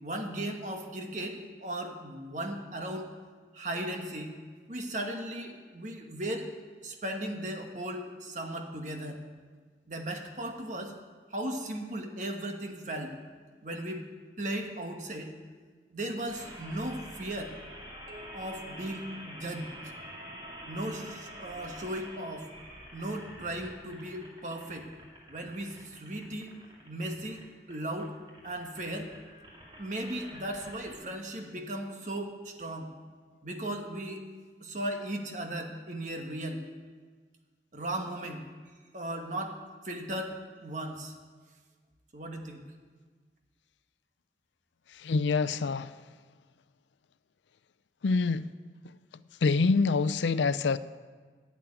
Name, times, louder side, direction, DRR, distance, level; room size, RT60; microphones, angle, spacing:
voice 1, 0.0-3.1 3.5-4.3 4.7-6.5 6.8-9.2 9.9-10.9 11.3-13.2 13.6-14.0 14.4-15.3 15.9-17.5 18.3-19.7 20.7-22.5 22.9-24.9 25.3-26.5 26.8-27.4 27.7-28.1 28.4-29.1 29.8-32.9 33.4-34.2 34.6-36.6 37.7-38.4 38.9-39.6 39.8-40.3 40.6-41.1 42.1-42.6, right 1 dB, 45° right, 3 dB, 1.4 m, -36 dB
sound 1, 16.3-31.1, equal, 25° right, 2.3 m, -48 dB
sound 2, 18.1-20.0, equal, 70° right, 2.1 m, -55 dB
voice 2, 45.0-45.9 48.0-48.5 49.4-50.8, left 4 dB, 85° left, 15 dB, 0.5 m, -26 dB
11.5 x 7.4 x 9.7 m, 1.5 s
head